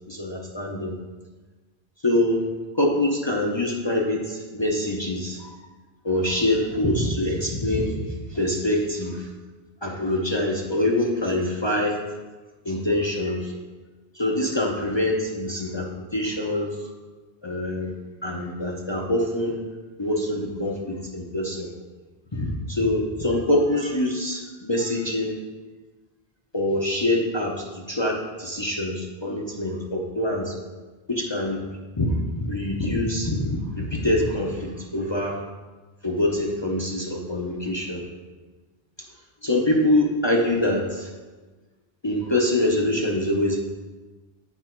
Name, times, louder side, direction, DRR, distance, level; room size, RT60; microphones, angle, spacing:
voice 1, 0.1-0.9 2.0-2.4 2.7-5.6 6.0-9.3 9.8-12.0 12.6-13.6 14.1-16.9 17.4-17.9 18.2-19.6 20.0-21.7 22.3-25.3 26.5-30.6 31.1-35.4 36.0-38.0 39.4-41.1 42.0-43.6, left 1 dB, 30° left, -1 dB, 0.7 m, -25 dB
8.0 x 4.7 x 4.5 m, 1.3 s
omnidirectional pair, 1.1 m